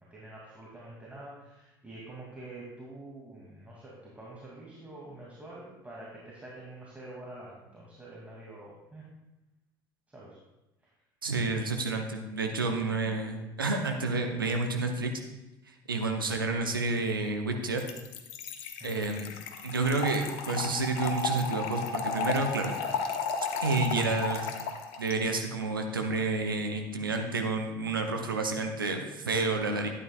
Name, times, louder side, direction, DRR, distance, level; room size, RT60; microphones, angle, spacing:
voice 1, 0.1-9.0 10.1-10.4 16.0-16.3 18.8-19.3, right 2 dB, 15° right, -5 dB, 2.6 m, -47 dB
voice 2, 11.2-15.1 15.9-17.8 18.8-19.3 19.6-22.8 23.6-24.4 25.0-29.9, right 3 dB, 90° right, 3 dB, 0.8 m, -30 dB
Trickle dribble / Fill (with liquid), 17.8-25.1, left 5 dB, 60° left, 1.0 m, -34 dB
12.5 x 9.4 x 2.4 m, 0.98 s
figure-of-eight pair, 60°, 11 cm